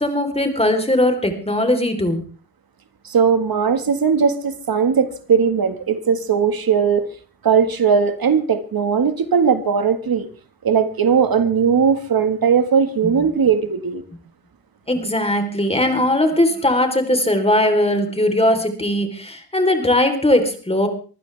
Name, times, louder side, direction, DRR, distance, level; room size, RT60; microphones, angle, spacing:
voice 1, 0.0-2.2 13.0-13.1 14.9-20.9, left 1 dB, 15° left, 5 dB, 3.8 m, -19 dB
voice 2, 3.0-7.1 7.4-10.3 10.6-14.0, right 6 dB, 65° right, 9 dB, 1.8 m, -18 dB
24.5 x 15.0 x 3.4 m, 0.39 s
cardioid pair, 90°, 38 cm